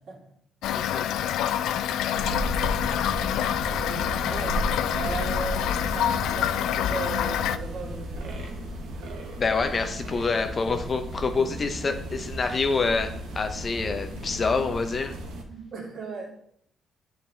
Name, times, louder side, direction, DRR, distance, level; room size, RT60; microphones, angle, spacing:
Toilet flush / Fill (with liquid), 0.6-7.6, left 10 dB, 85° left, 0.3 m, -27 dB
voice 1, 0.7-1.0 9.4-15.1, left 4 dB, 35° left, 7 dB, 0.9 m, -27 dB
sound 1, 2.1-15.4, equal, 85° right, 1.3 m, -34 dB
voice 2, 3.7-4.6 4.9-8.5 8.8-9.2 15.5-16.3, right 3 dB, 55° right, -3 dB, 2.2 m, -37 dB
10.0 x 4.2 x 3.5 m, 0.68 s
cardioid pair, 90°, 0 cm